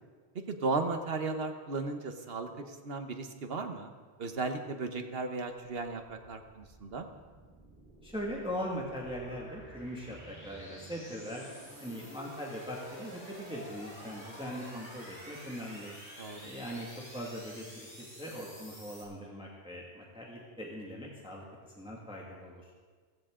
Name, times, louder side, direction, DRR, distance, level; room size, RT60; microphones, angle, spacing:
voice 1, 0.3-3.9 4.2-7.1 16.2-16.5, right 3 dB, 65° right, 6 dB, 1.3 m, -35 dB
sound 1, 6.1-19.0, equal, 10° left, 4.0 m, -50 dB
voice 2, 8.0-11.5 11.8-15.9 16.4-16.9 17.1-21.4 21.8-22.6, equal, 5° right, -3 dB, 1.9 m, -40 dB
16.0 x 15.5 x 3.8 m, 1.5 s
omnidirectional pair, 1.1 m